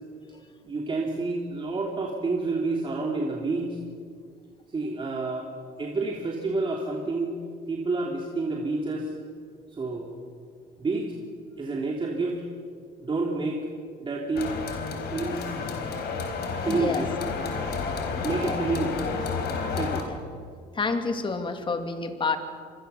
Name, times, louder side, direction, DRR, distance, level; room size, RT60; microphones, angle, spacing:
voice 1, 0.6-3.8 4.7-5.5 5.8-7.3 7.7-9.1 9.7-10.1 10.8-11.1 11.6-12.4 13.0-13.6 14.0-14.5 15.1-15.5 16.6-17.1 18.2-19.4 19.8-20.1, right 3 dB, 30° right, -1 dB, 3.0 m, -29 dB
sound 1, 14.4-20.0, left 5 dB, 75° left, 4.1 m, -31 dB
voice 2, 16.6-17.0 18.4-18.6 20.0-20.2 20.7-22.4, left 4 dB, 30° left, 6 dB, 2.7 m, -29 dB
26.0 x 22.0 x 7.0 m, 2.2 s
cardioid pair, 110°, 17 cm